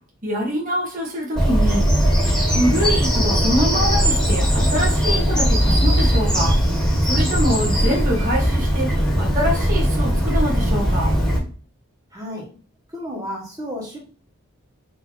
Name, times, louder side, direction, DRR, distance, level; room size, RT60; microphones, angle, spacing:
voice 1, 0.2-1.9 2.5-6.6 7.0-11.1, equal, 35° right, -2 dB, 1.5 m, -24 dB
Bird vocalization bird call bird song, 1.4-11.4, equal, 5° left, 1.8 m, -19 dB
voice 2, 12.1-12.5 12.9-14.0, left 1 dB, 15° right, -3 dB, 1.6 m, -32 dB
4.3 x 3.2 x 3.3 m, 0.39 s
head